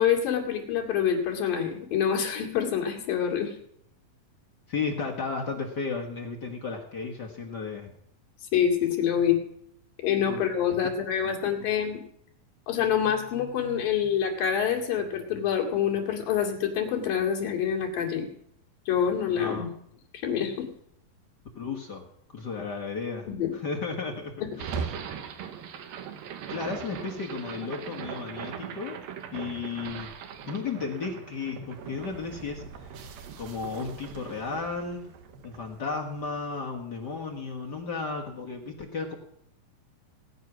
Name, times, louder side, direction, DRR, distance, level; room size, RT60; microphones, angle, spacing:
voice 1, 0.0-3.5 8.5-9.4 10.0-12.0 12.7-18.3 18.9-19.7 20.2-20.7 23.3-23.5 24.4-24.5, left 8 dB, 75° left, 0 dB, 4.1 m, -26 dB
voice 2, 4.7-7.9 10.3-10.4 10.7-10.8 11.6-11.7 19.3-19.7 21.5-22.0 22.3-23.3 23.5-24.9 26.5-29.0 29.3-30.1 30.5-35.1 35.4-39.1, left 4 dB, 55° left, 0 dB, 1.1 m, -34 dB
sound 1, 24.5-36.8, right 7 dB, 80° right, 3.0 m, -40 dB
18.0 x 9.4 x 6.1 m, 0.72 s
omnidirectional pair, 4.1 m